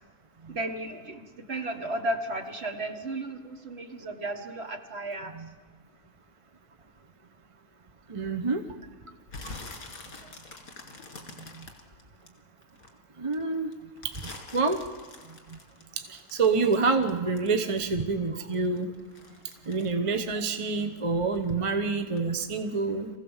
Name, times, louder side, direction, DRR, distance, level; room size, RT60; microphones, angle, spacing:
voice 1, 0.5-5.3 10.2-10.3, right 1 dB, 45° right, 5 dB, 1.7 m, -34 dB
voice 2, 8.1-8.6 11.5-11.7 13.2-13.7 14.0-14.1 14.5-14.8 16.1-18.9 19.7-23.1, right 4 dB, 25° right, 6 dB, 0.9 m, -27 dB
sound 1, 9.3-12.9 13.3-18.1 18.4-21.1 21.4-21.7 22.2-22.3, left 3 dB, 70° left, 2.6 m, -45 dB
24.0 x 16.0 x 7.2 m, 1.5 s
omnidirectional pair, 1.5 m